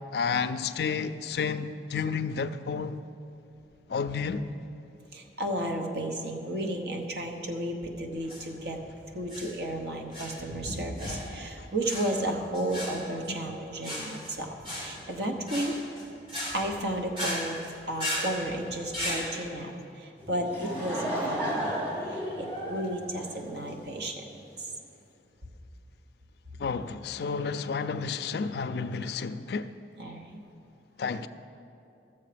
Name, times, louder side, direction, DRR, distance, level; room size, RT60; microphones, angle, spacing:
voice 1, 0.1-3.0 3.9-4.5 13.3-13.4 26.6-29.7 31.0-31.3, left 5 dB, 60° left, 0.3 m, -31 dB
voice 2, 5.1-8.8 9.1-15.7 16.5-17.6 17.9-19.7 20.0-21.8 22.1-24.1 30.0-30.4, right 1 dB, 60° right, 1.0 m, -33 dB
sound 1, 8.2-19.2, equal, 25° right, 2.3 m, -37 dB
Laughter / Crowd, 20.2-24.0, equal, 10° right, 2.6 m, -33 dB
13.0 x 7.1 x 5.0 m
head